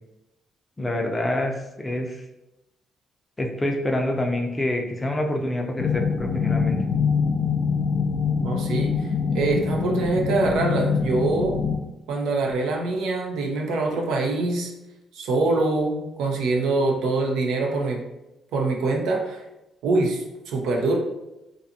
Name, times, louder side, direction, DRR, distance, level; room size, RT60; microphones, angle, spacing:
voice 1, 0.8-2.2 3.4-6.8, left 1 dB, 20° left, 2 dB, 0.4 m, -26 dB
sound 1, 5.8-11.8, left 6 dB, 65° left, 0.8 m, -24 dB
voice 2, 8.4-9.1 9.3-11.6 12.1-14.7 15.1-18.0 18.5-19.4 19.8-21.0, right 3 dB, 85° right, 1 dB, 0.5 m, -24 dB
2.5 x 2.4 x 2.7 m, 0.94 s
cardioid pair, 90°, 0 cm